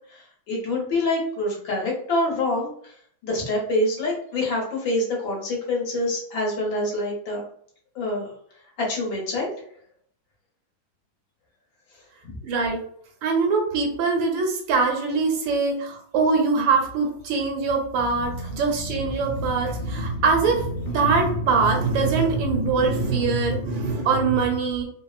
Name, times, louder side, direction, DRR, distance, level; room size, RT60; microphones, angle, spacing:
voice 1, 0.5-2.7 3.2-7.4 8.0-8.3 8.8-9.5, left 1 dB, 70° left, -2 dB, 1.6 m, -25 dB
voice 2, 12.4-12.8 13.2-24.8, right 4 dB, 75° right, 2 dB, 1.4 m, -23 dB
sound 1, 18.0-23.3, equal, 90° left, 1.4 m, -36 dB
3.6 x 2.0 x 2.3 m, 0.62 s
omnidirectional pair, 2.2 m